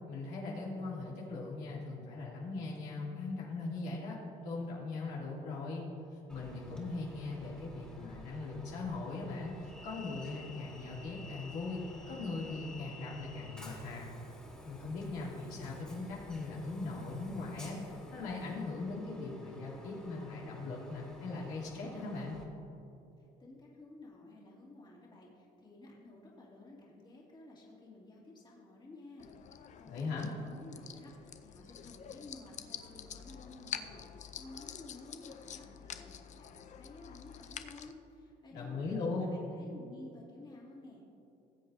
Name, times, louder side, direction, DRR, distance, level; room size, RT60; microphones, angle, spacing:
voice 1, 0.1-5.9 6.1-14.1 14.6-17.8 18.1-22.4 29.9-30.3 38.5-39.3, left 3 dB, 90° left, -5 dB, 2.7 m, -40 dB
Train, 6.3-22.4, left 1 dB, 5° left, 2.3 m, -51 dB
voice 2, 23.4-41.0, left 2 dB, 25° left, -4 dB, 2.3 m, -53 dB
sound 1, 29.2-37.9, left 8 dB, 45° left, 0.5 m, -47 dB
19.0 x 7.8 x 2.7 m, 2.8 s
cardioid pair, 110°, 17 cm